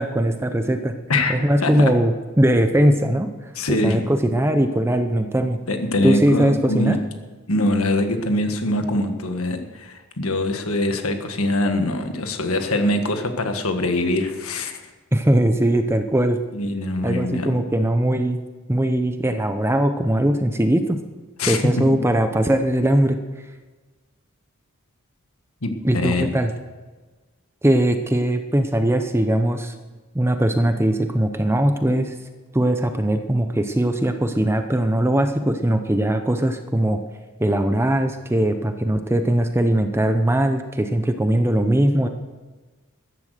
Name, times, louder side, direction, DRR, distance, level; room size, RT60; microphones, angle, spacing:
voice 1, 0.0-0.9 1.3-3.3 3.7-5.6 6.0-7.0 15.1-16.4 17.0-18.4 18.7-21.0 21.5-23.2 25.8-26.5 27.6-29.7 30.1-32.1 32.5-37.0 37.4-42.1, right 1 dB, 10° right, 7 dB, 0.7 m, -20 dB
voice 2, 1.1-1.9 3.5-4.1 5.7-7.0 7.5-14.8 16.5-17.5 21.4-21.6 25.6-26.3, left 1 dB, 70° left, 6 dB, 1.7 m, -23 dB
14.0 x 11.0 x 6.6 m, 1.3 s
head